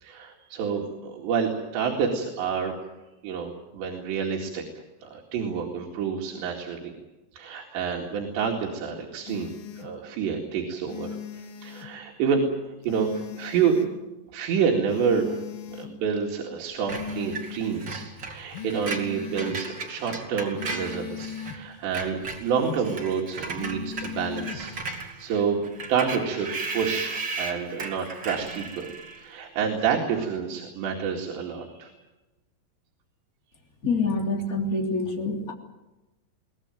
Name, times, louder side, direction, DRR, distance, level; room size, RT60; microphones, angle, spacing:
voice 1, 0.0-2.7 3.2-4.6 5.0-6.9 7.3-11.2 11.6-12.4 12.9-13.8 14.3-15.4 15.7-18.0 18.3-25.6 25.9-26.5 26.7-28.9 29.2-32.0, right 6 dB, 85° right, -1 dB, 4.5 m, -28 dB
sound 1, 9.3-9.9 10.9-11.9 12.9-13.9 14.9-15.9 16.9-17.9 18.5-19.6 20.5-21.6 23.6-24.6, left 8 dB, 65° left, 3.2 m, -38 dB
Screech, 16.9-21.6 21.8-29.3, right 3 dB, 30° right, 2.7 m, -36 dB
voice 2, 33.8-35.5, left 3 dB, 20° left, 2 dB, 3.3 m, -26 dB
23.0 x 18.5 x 9.1 m, 1.0 s
omnidirectional pair, 4.9 m